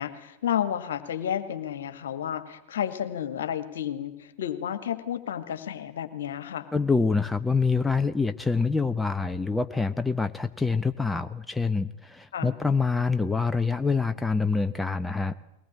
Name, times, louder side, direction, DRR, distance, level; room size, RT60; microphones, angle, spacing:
voice 1, 0.0-6.6 12.3-12.5, left 9 dB, 60° left, 11 dB, 2.0 m, -31 dB
voice 2, 6.7-15.4, left 4 dB, 10° left, 10 dB, 0.9 m, -26 dB
21.5 x 19.5 x 9.9 m, 0.85 s
figure-of-eight pair, 90°, 0 cm